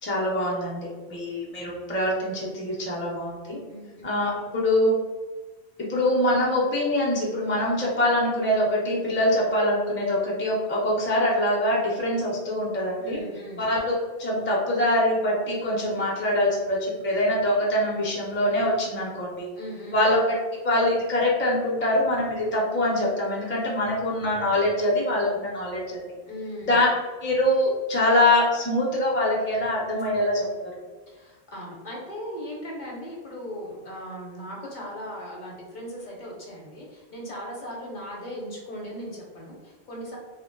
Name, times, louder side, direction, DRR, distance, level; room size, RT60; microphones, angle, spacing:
voice 1, 0.0-3.6 4.0-4.3 4.6-4.9 5.8-13.2 13.6-13.9 14.2-19.5 19.9-20.2 20.6-26.0 26.7-26.9 27.2-30.5, left 1 dB, 15° left, -4 dB, 0.4 m, -24 dB
voice 2, 3.7-4.0 13.0-13.7 19.6-20.0 26.3-26.8 31.1-40.2, equal, 50° left, -3 dB, 0.8 m, -38 dB
2.1 x 2.1 x 3.7 m, 1.3 s
omnidirectional pair, 1.1 m